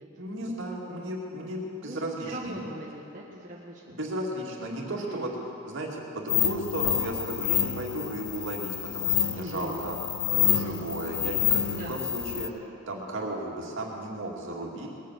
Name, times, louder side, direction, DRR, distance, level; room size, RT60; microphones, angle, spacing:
voice 1, 0.2-2.6 3.9-5.3 5.7-10.0 10.3-14.9, right 1 dB, 60° right, -2 dB, 2.3 m, -35 dB
voice 2, 1.8-3.9 4.9-5.3 9.4-9.8 10.5-10.9 11.7-12.0, right 1 dB, 35° right, -5 dB, 1.5 m, -41 dB
sound 1, 6.3-12.5, left 10 dB, 60° left, 0.8 m, -28 dB
20.0 x 8.4 x 7.5 m, 2.8 s
head